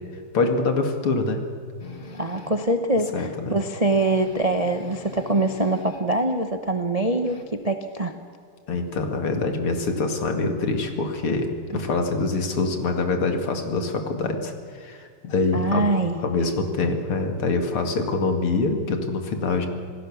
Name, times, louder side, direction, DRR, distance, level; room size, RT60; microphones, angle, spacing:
voice 1, 0.3-1.4 3.1-3.6 8.7-15.9 16.2-19.7, left 3 dB, 75° left, 5 dB, 3.0 m, -25 dB
sound 1, 1.8-2.7 3.2-3.3 3.6-3.7 3.8-6.2 6.5-7.4, left 4 dB, 30° left, 1.6 m, -42 dB
voice 2, 2.2-8.2 15.5-16.2, right 2 dB, 30° right, 6 dB, 0.6 m, -24 dB
27.5 x 17.5 x 7.3 m, 2.2 s
omnidirectional pair, 2.4 m